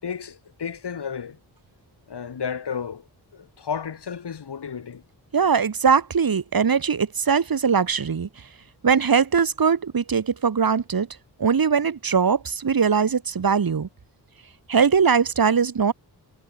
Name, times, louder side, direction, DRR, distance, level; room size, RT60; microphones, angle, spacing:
voice 1, 0.0-1.4 2.1-3.0 3.3-5.0, left 7 dB, 75° left, 5.1 m, -32 dB
voice 2, 5.3-8.3 8.8-11.1 11.4-13.9 14.7-15.9, right 6 dB, 55° right, 2.6 m, -21 dB
wide cardioid pair, 105°, 41 cm